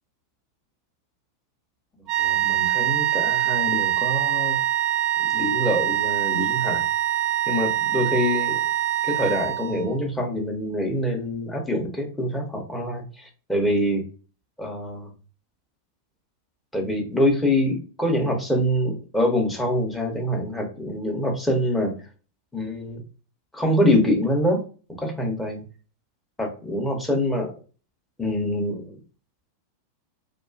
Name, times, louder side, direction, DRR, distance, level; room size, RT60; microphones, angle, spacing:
sound 1, 2.1-9.9, right 11 dB, 30° right, 0.4 m, -24 dB
voice 1, 2.2-4.6 5.2-6.9 7.5-8.6 9.0-14.0 14.6-15.1 16.7-22.1 22.5-23.0 23.5-24.6 25.0-25.6 26.4-27.5 28.2-28.8, left 1 dB, 5° left, 0 dB, 0.7 m, -25 dB
2.4 x 2.2 x 2.3 m, 0.37 s
figure-of-eight pair, 90°, 0 cm